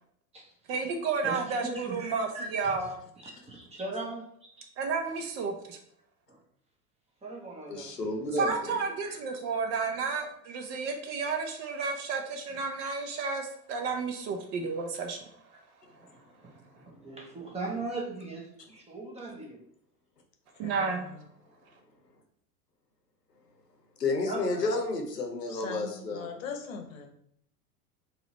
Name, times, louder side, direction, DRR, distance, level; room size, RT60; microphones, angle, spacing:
voice 1, 0.7-3.0 4.8-5.8 8.4-15.2 20.6-21.1, right 4 dB, 35° right, 5 dB, 0.7 m, -31 dB
voice 2, 1.2-2.8 3.2-4.6 6.3-6.4 7.2-7.9 8.7-9.2 16.0-16.1 16.4-16.5 16.9-19.6 24.3-24.6, right 2 dB, 15° right, -1 dB, 1.0 m, -39 dB
voice 3, 7.7-8.8 24.0-26.3, left 3 dB, 85° left, 3 dB, 0.9 m, -31 dB
voice 4, 20.6-21.2 25.5-27.1, left 6 dB, 55° left, 4 dB, 0.9 m, -40 dB
4.1 x 2.5 x 4.0 m, 0.68 s
figure-of-eight pair, 85°, 47 cm